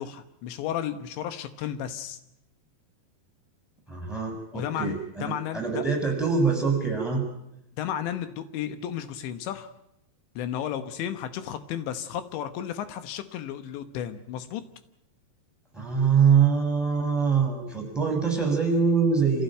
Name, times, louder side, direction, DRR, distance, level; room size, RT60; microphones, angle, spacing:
voice 1, 0.0-2.2 4.5-5.8 7.8-9.7 10.4-14.6, left 10 dB, 85° left, 10 dB, 3.4 m, -33 dB
voice 2, 3.9-7.2 15.7-19.4, right 6 dB, ahead, 0 dB, 7.1 m, -24 dB
27.5 x 16.0 x 9.2 m, 0.85 s
omnidirectional pair, 5.1 m